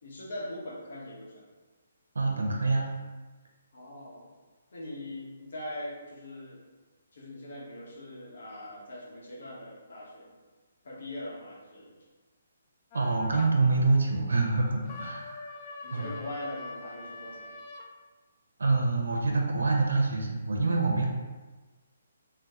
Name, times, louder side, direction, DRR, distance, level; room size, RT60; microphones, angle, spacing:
voice 1, 0.0-1.5 3.7-4.3 4.7-6.6 7.1-10.3 10.8-12.0 15.8-17.5, left 1 dB, 65° left, -3 dB, 1.0 m, -41 dB
voice 2, 2.1-2.9 12.9-15.4 15.9-16.1 18.6-21.0, right 3 dB, 90° right, 1 dB, 0.5 m, -26 dB
sound 1, 12.9-13.5 14.9-17.9, left 3 dB, 35° left, 0.3 m, -43 dB
2.8 x 2.2 x 3.5 m, 1.3 s
hypercardioid pair, 160°, 0 cm